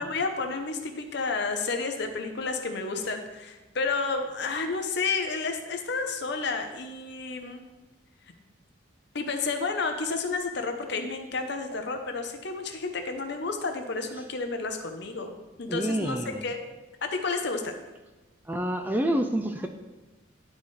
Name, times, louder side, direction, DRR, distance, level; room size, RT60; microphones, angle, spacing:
voice 1, 0.0-7.6 9.1-15.3 15.6-16.2 16.4-16.6 17.0-17.7, left 4 dB, 60° left, 5 dB, 0.7 m, -31 dB
voice 2, 15.7-16.5 18.5-19.7, right 1 dB, 10° right, 6 dB, 0.3 m, -28 dB
11.5 x 4.1 x 3.2 m, 1.1 s
head